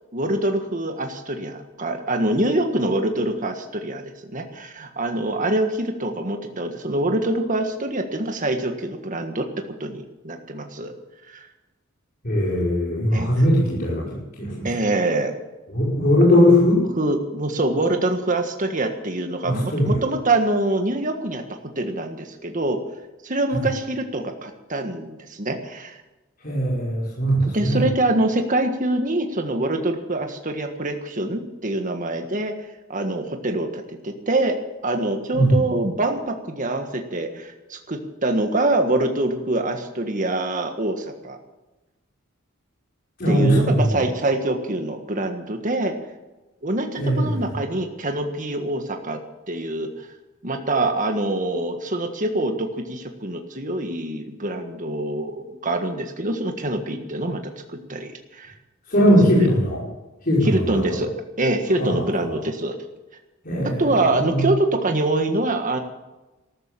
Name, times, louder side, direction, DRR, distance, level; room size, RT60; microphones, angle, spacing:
voice 1, 0.1-9.5 9.8-10.9 11.3-11.5 13.1-13.3 14.6-15.3 17.0-22.8 23.2-26.0 27.5-32.5 32.9-41.4 43.3-45.9 46.6-49.2 49.5-50.1 50.4-58.5 59.0-59.1 60.4-62.7 63.8-65.8, right 2 dB, 40° right, 5 dB, 1.6 m, -25 dB
voice 2, 12.2-14.7 15.7-16.9 19.4-20.0 23.5-23.6 26.4-27.8 35.3-35.6 43.2-44.0 47.0-47.6 58.9-59.8 60.3-60.8 61.8-62.0 62.2-62.4 63.4-64.5, equal, 45° left, -6 dB, 5.2 m, -20 dB
14.0 x 13.0 x 7.5 m, 1.1 s
head